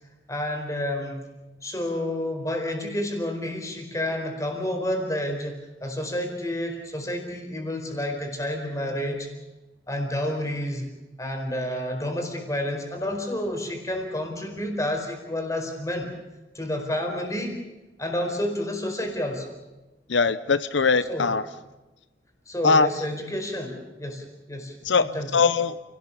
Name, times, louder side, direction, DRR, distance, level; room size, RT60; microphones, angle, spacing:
voice 1, 0.3-1.2 1.6-9.3 9.9-10.9 11.2-16.1 16.5-17.7 18.0-19.5 21.1-21.3 22.5-25.3, left 1 dB, 15° left, 3 dB, 4.6 m, -30 dB
voice 2, 20.1-21.4 22.6-22.9 24.8-25.8, left 4 dB, 85° left, 14 dB, 0.8 m, -21 dB
29.5 x 18.0 x 7.1 m, 1.1 s
head